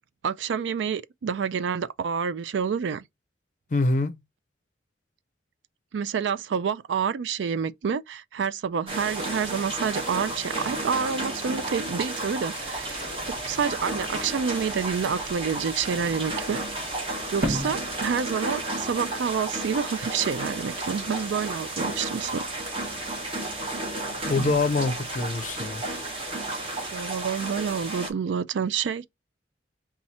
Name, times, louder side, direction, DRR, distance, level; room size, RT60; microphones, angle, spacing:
voice 1, 0.2-3.0 5.9-16.6 17.3-22.5 26.9-29.1, right 6 dB, 85° right, 0.4 m, -28 dB
voice 2, 3.7-4.1 24.3-25.8, left 3 dB, 45° left, 0.5 m, -25 dB
sound 1, 8.9-28.1, right 2 dB, 30° right, 1.1 m, -32 dB
sound 2, 12.6-18.8, right 1 dB, 50° right, 1.5 m, -37 dB
4.2 x 2.4 x 4.1 m
head